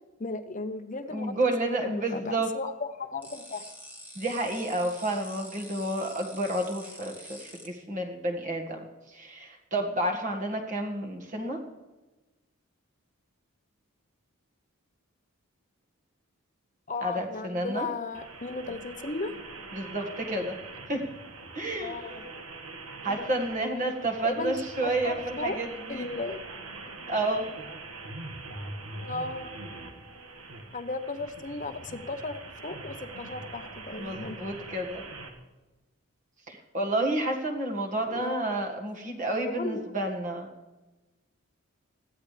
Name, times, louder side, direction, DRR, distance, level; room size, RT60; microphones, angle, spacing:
voice 1, 0.2-1.4 1.6-3.6 16.9-19.3 21.8-22.2 23.1-23.3 23.7-24.0 24.2-24.5 24.8-25.6 25.9-26.4 29.0-29.5 30.7-34.4 38.1-38.6 39.5-39.9, left 3 dB, 35° left, 8 dB, 0.8 m, -35 dB
voice 2, 1.1-2.5 4.2-11.6 17.0-17.9 19.7-20.6 20.9-21.0 21.5-22.0 23.0-26.1 27.1-27.5 34.0-35.0 36.5-40.5, right 1 dB, 35° right, 2 dB, 1.8 m, -30 dB
sound 1, 3.2-7.7, equal, 10° right, 1.8 m, -46 dB
sound 2, 18.1-35.3, right 3 dB, 80° right, 1.7 m, -43 dB
20.5 x 14.5 x 3.4 m, 1.1 s
head